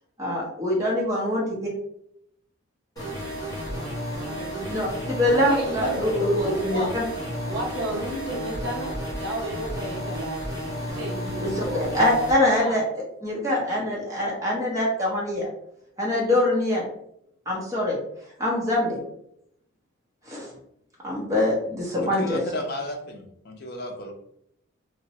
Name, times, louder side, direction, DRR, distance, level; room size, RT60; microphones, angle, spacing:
voice 1, 0.2-1.7 4.7-7.0 11.4-12.8 13.2-15.5 16.0-16.8 17.5-18.0 18.4-19.0 20.3-20.5 21.0-22.4, left 1 dB, 15° right, -5 dB, 0.8 m, -24 dB
sound 1, 3.0-12.3, equal, 15° left, 1.2 m, -32 dB
voice 2, 4.2-4.7 5.3-6.9 7.4-10.4 10.8-11.9 12.3-12.8, equal, 55° right, -1 dB, 0.8 m, -32 dB
voice 3, 21.9-24.1, left 1 dB, 50° left, 3 dB, 0.5 m, -33 dB
2.9 x 2.1 x 2.8 m, 0.74 s
head